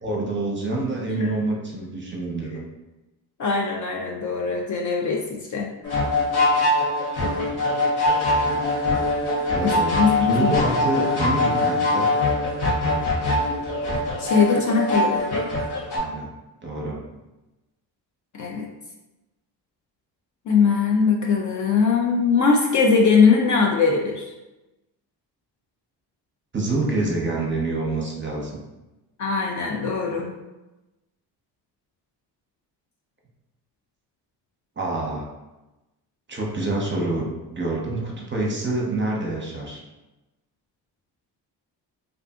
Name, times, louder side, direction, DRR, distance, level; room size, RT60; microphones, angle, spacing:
voice 1, 0.0-2.6 9.5-12.1 15.9-16.3 16.6-17.0 26.5-28.6 34.8-35.3 36.3-39.8, right 2 dB, 25° right, -2 dB, 0.7 m, -27 dB
voice 2, 3.4-5.7 9.6-10.5 14.2-15.3 18.3-18.7 20.5-24.3 29.2-30.3, left 5 dB, 45° left, 0 dB, 0.4 m, -21 dB
sound 1, 5.8-16.0, left 2 dB, 60° left, 0.8 m, -23 dB
2.5 x 2.4 x 2.4 m, 1.0 s
supercardioid pair, 60°, 45 cm